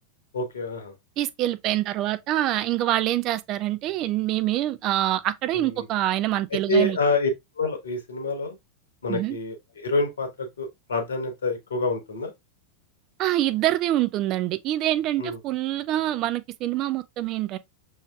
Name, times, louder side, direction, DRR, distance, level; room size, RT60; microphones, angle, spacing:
voice 1, 0.3-0.9 5.5-5.9 6.7-7.3 7.6-8.6 9.0-12.3 15.2-15.4, left 2 dB, 65° left, 1.0 m, -27 dB
voice 2, 1.2-7.0 9.1-9.4 13.2-17.6, right 14 dB, 35° right, 0.4 m, -25 dB
5.5 x 3.1 x 2.3 m
figure-of-eight pair, 90°, 0 cm